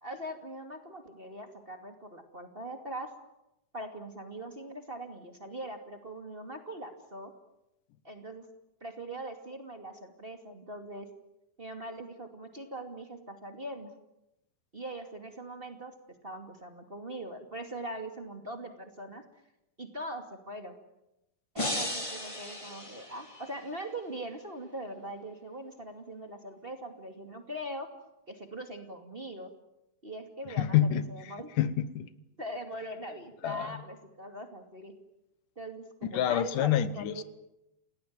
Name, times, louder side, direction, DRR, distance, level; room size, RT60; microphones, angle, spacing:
voice 1, 0.0-3.1 3.7-7.3 8.0-8.5 8.8-11.1 11.6-13.9 14.7-15.9 16.2-19.2 19.8-20.7 21.5-27.9 28.3-29.5 30.0-31.5 32.4-34.9 35.6-37.2, right 1 dB, 20° right, 5 dB, 2.2 m, -41 dB
sound 1, 21.6-23.7, left 1 dB, 10° left, 3.2 m, -36 dB
voice 2, 30.6-31.0 31.6-32.1 33.4-33.7 36.1-37.2, left 11 dB, 85° left, 14 dB, 2.7 m, -27 dB
28.5 x 18.0 x 9.4 m, 0.88 s
omnidirectional pair, 3.6 m